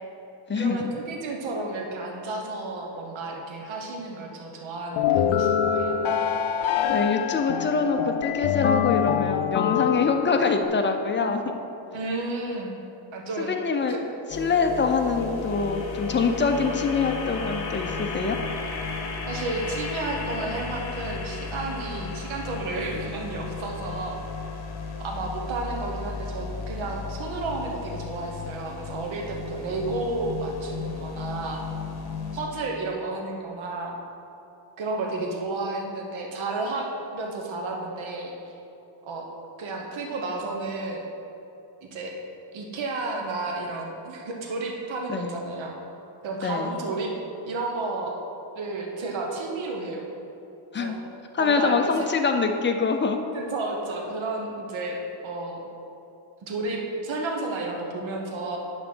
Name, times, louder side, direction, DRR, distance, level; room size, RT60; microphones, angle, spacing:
voice 1, 0.5-6.0 11.9-12.7 13.1-13.5 13.9-14.0 19.3-24.2 25.0-31.6 32.3-34.0 34.8-36.9 37.1-38.5 39.0-39.3 39.6-41.0 41.8-42.1 42.5-45.8 46.2-47.1 47.5-48.2 48.6-50.0 50.8-51.0 51.4-51.9 53.3-55.6 56.4-58.6, right 2 dB, 70° right, 0 dB, 1.1 m, -32 dB
sound 1, 5.0-10.7, left 9 dB, 75° left, 0.5 m, -25 dB
voice 2, 6.9-11.6 13.4-14.0 14.3-18.4 45.1-45.4 46.4-46.7 50.7-51.0 51.3-53.2, left 4 dB, 25° left, 5 dB, 0.5 m, -24 dB
sound 2, 14.3-32.4, left 5 dB, 50° left, 1.0 m, -34 dB
9.9 x 4.0 x 6.1 m, 2.8 s
wide cardioid pair, 150°, 48 cm